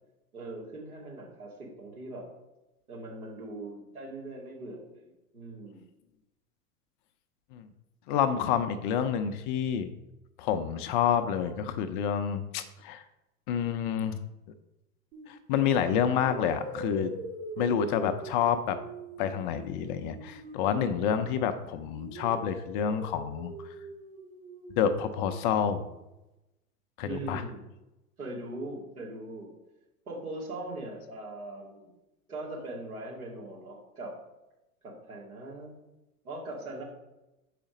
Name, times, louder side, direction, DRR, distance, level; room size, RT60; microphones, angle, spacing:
voice 1, 0.3-2.3 2.9-5.9 27.0-27.6 28.2-29.5 30.1-31.9 32.3-34.2 34.8-35.7 36.2-36.8, right 2 dB, 75° right, -3 dB, 2.5 m, -40 dB
voice 2, 8.1-9.9 10.4-13.0 13.5-14.2 15.3-17.1 17.6-18.8 19.2-23.5 24.8-25.8 27.0-27.4, left 8 dB, 35° left, 10 dB, 0.5 m, -28 dB
sound 1, 15.1-15.4 16.2-21.5 21.9-25.9, right 2 dB, 60° right, 2.2 m, -43 dB
7.0 x 5.0 x 5.1 m, 0.97 s
figure-of-eight pair, 90°, 44 cm